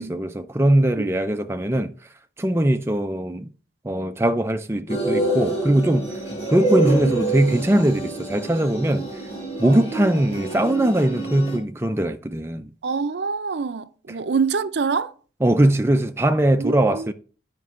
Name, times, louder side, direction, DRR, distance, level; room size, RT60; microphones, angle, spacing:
voice 1, 0.0-1.9 2.4-3.5 3.8-6.1 6.5-9.1 9.6-12.7 15.4-17.1, right 1 dB, 15° right, 0.4 m, -21 dB
sound 1, 4.9-11.6, right 2 dB, 35° left, 2.8 m, -27 dB
voice 2, 12.8-15.1 16.6-17.1, right 5 dB, 70° right, 0.5 m, -26 dB
9.2 x 5.2 x 3.7 m
head